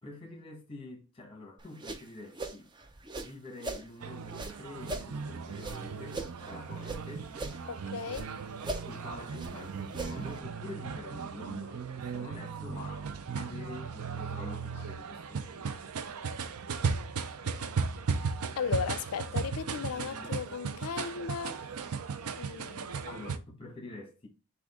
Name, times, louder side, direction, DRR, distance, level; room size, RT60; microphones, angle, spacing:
voice 1, 0.0-2.7 3.2-7.3 8.8-15.7 19.9-20.3 23.0-24.3, left 2 dB, 25° left, 1.2 m, -47 dB
sound 1, 1.6-3.9 4.3-7.0 7.3-8.3 8.6-10.4, right 2 dB, 20° right, 0.4 m, -40 dB
sound 2, 4.0-23.4, right 5 dB, 85° right, 0.5 m, -37 dB
voice 2, 7.7-8.3 18.6-21.6 22.4-23.3, left 6 dB, 75° left, 0.4 m, -36 dB
6.1 x 2.4 x 3.5 m
head